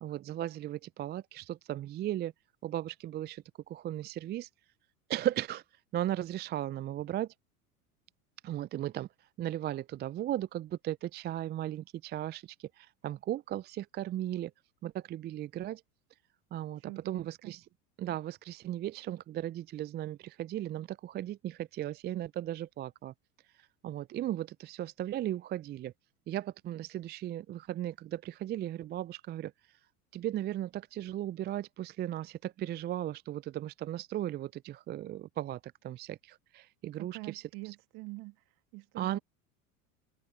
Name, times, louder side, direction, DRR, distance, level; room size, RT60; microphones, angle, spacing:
voice 1, 0.0-2.3 2.6-4.5 5.1-5.6 5.9-7.3 8.4-9.1 9.4-14.5 14.8-15.8 16.5-17.6 18.0-23.1 23.6-25.9 26.3-29.5 30.1-37.4 39.0-39.2, right 13 dB, 25° right, 0.5 m, -36 dB
voice 2, 16.8-17.6 36.9-38.4 38.7-39.2, right 24 dB, 50° right, 1.9 m, -45 dB
open air
hypercardioid pair, 80°, 45 cm